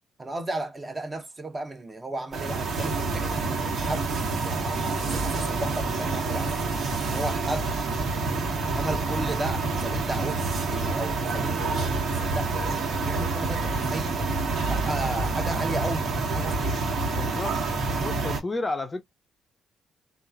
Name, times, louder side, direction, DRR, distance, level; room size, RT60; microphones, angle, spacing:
voice 1, 0.2-4.1 4.4-6.6 7.1-7.8 8.7-10.4 10.7-12.5 13.0-14.2 14.7-16.7, right 2 dB, 25° right, 0.9 m, -34 dB
sound 1, 2.3-18.4, right 3 dB, 60° right, 1.4 m, -27 dB
voice 2, 17.1-17.6 18.0-19.0, left 2 dB, 25° left, 0.6 m, -31 dB
3.0 x 2.4 x 2.3 m
cardioid pair, 90°, 0 cm